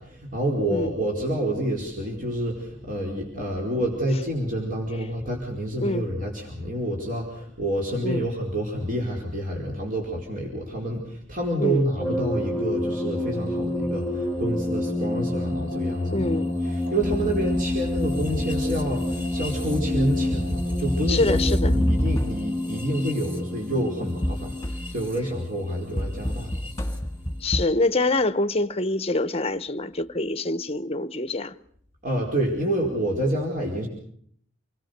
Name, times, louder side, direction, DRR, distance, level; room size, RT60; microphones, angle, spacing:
voice 1, 0.0-26.7 32.0-33.9, right 1 dB, 40° right, 4.9 m, -28 dB
sound 1, 12.0-27.0, left 1 dB, 10° right, 4.4 m, -29 dB
voice 2, 16.1-16.5 21.1-21.8 27.4-31.5, left 2 dB, 30° left, 0.9 m, -25 dB
sound 2, 17.0-22.7 24.2-25.1 26.0-27.7, equal, 15° left, 2.0 m, -28 dB
28.0 x 21.0 x 6.7 m
head